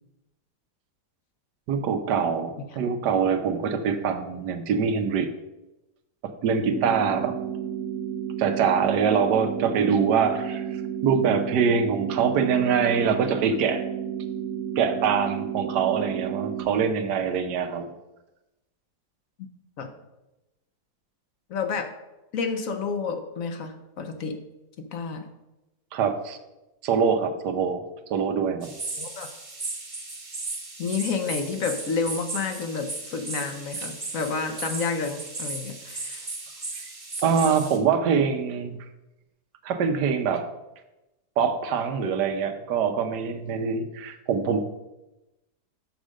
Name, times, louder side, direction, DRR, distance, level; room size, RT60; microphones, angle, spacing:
voice 1, 1.7-5.3 6.4-7.3 8.4-10.6 11.0-13.8 14.8-17.9 25.9-26.4 26.8-27.8 28.1-28.7 37.2-38.8 39.6-40.5 41.4-44.6, right 6 dB, 85° right, 7 dB, 1.4 m, -24 dB
sound 1, 6.6-16.6, right 9 dB, 60° right, 1.1 m, -32 dB
voice 2, 21.5-21.9 22.3-24.4 24.8-25.2 29.0-29.3 30.8-36.3, left 5 dB, 60° left, 6 dB, 1.1 m, -30 dB
sound 2, 28.6-37.8, right 3 dB, 25° right, 1.1 m, -36 dB
6.5 x 5.0 x 6.2 m, 0.99 s
omnidirectional pair, 1.7 m